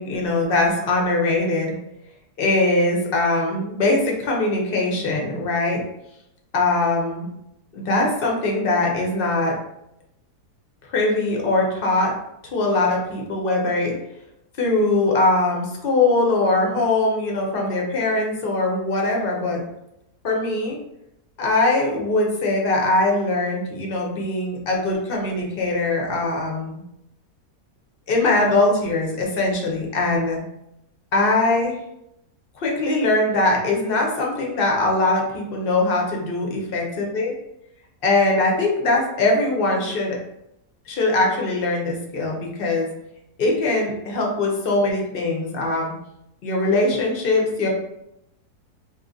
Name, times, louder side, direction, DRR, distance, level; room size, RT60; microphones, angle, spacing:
voice 1, 0.0-1.7 2.4-5.8 6.5-7.3 7.7-9.5 10.9-12.1 12.5-13.9 14.6-19.6 20.2-20.8 21.4-26.8 28.1-30.4 31.1-31.8 32.6-37.3 38.0-40.1 40.9-42.9 43.4-45.9 46.4-47.7, left 2 dB, 55° left, -1 dB, 0.6 m, -21 dB
2.9 x 2.3 x 3.7 m, 0.83 s
omnidirectional pair, 1.7 m